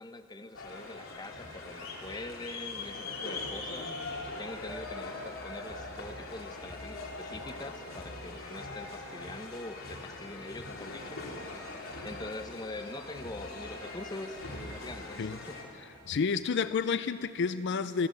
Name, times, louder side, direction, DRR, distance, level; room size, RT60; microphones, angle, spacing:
voice 1, 0.0-3.9 4.3-11.3 12.0-15.7, left 2 dB, 20° left, 8 dB, 0.8 m, -44 dB
sound 1, 0.5-15.6, left 2 dB, 75° left, 3.4 m, -41 dB
voice 2, 16.1-18.1, left 5 dB, 55° left, 13 dB, 0.4 m, -30 dB
29.5 x 13.5 x 7.5 m, 2.9 s
head